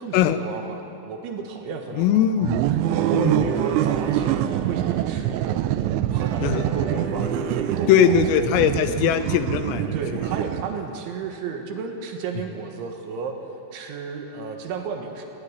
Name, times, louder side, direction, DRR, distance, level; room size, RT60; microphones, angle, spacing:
voice 1, 0.0-2.5 2.9-5.8 6.1-8.6 9.9-13.3 13.7-15.3, right 5 dB, 70° right, 3 dB, 3.7 m, -33 dB
voice 2, 2.0-2.6 3.1-3.4 6.4-6.6 7.9-9.9, left 9 dB, 85° left, 10 dB, 3.6 m, -20 dB
sound 1, 2.4-11.0, right 12 dB, 90° right, 2.5 m, -25 dB
sound 2, 2.6-5.5 6.1-9.0, right 1 dB, 25° right, 5.0 m, -36 dB
19.0 x 17.5 x 9.8 m, 2.8 s
omnidirectional pair, 5.8 m